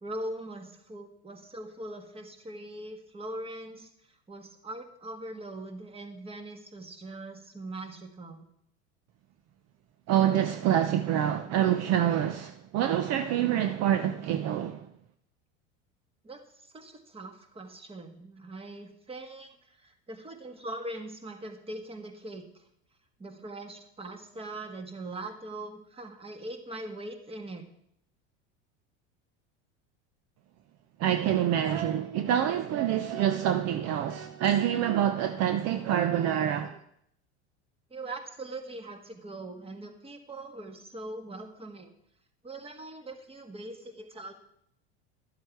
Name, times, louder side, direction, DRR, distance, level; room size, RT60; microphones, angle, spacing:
voice 1, 0.0-8.4 16.2-22.6 23.2-27.6 37.9-41.9 42.4-44.3, right 1 dB, 15° right, 1.6 m, -41 dB
voice 2, 10.1-14.9 31.0-36.8, right 10 dB, 50° right, 0.7 m, -26 dB
12.0 x 7.7 x 4.7 m
supercardioid pair, 100°, 33 cm